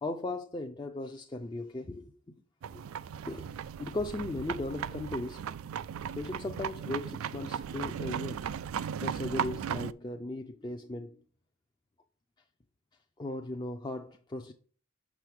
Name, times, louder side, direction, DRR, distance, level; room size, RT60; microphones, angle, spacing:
voice 1, 0.0-2.3 2.7-2.8 3.3-5.4 6.2-8.4 9.0-11.2 13.2-14.5, left 2 dB, 20° left, 0.4 m, -37 dB
sound 1, 2.6-9.9, right 8 dB, 85° right, 0.3 m, -37 dB
6.2 x 6.1 x 3.4 m
head